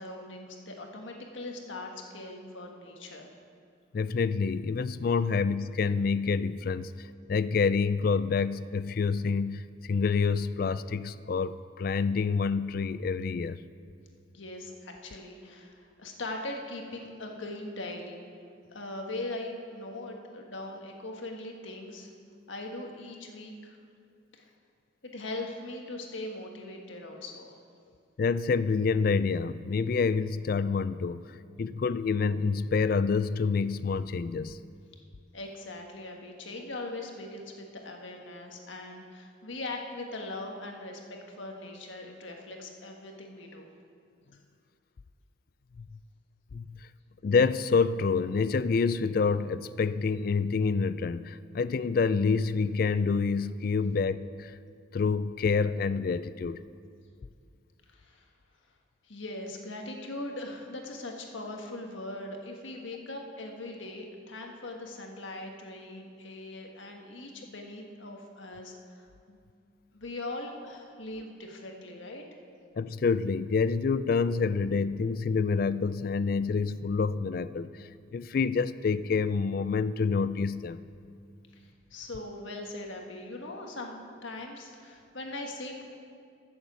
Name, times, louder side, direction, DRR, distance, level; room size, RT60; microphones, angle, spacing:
voice 1, 0.0-3.3 14.3-18.2 18.7-22.1 22.5-23.8 24.3-24.5 25.0-27.5 35.3-43.7 57.9-58.3 59.0-69.4 69.9-72.2 81.5-85.9, left 2 dB, 75° left, 2 dB, 1.5 m, -40 dB
voice 2, 3.9-13.6 28.2-31.3 31.6-34.6 45.8-45.9 46.5-46.8 47.2-54.5 54.9-56.6 72.8-80.8, left 5 dB, 45° left, 16 dB, 0.3 m, -27 dB
14.0 x 7.0 x 7.0 m, 2.3 s
head